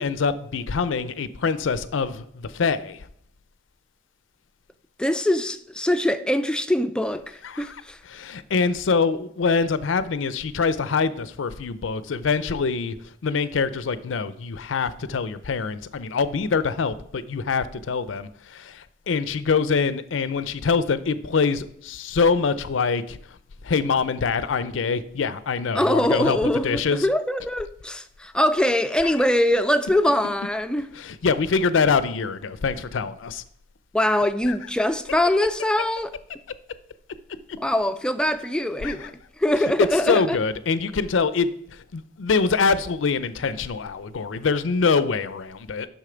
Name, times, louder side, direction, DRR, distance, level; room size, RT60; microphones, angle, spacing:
voice 1, 0.0-3.1 7.4-23.4 23.6-26.4 26.6-27.1 30.9-33.4 34.5-34.6 38.8-39.1 39.8-45.9, left 5 dB, 80° left, 0.5 m, -24 dB
voice 2, 5.0-8.0 25.7-30.9 33.9-36.1 37.6-39.1 39.4-40.4, left 1 dB, 5° left, 0.4 m, -23 dB
6.6 x 6.3 x 5.0 m
head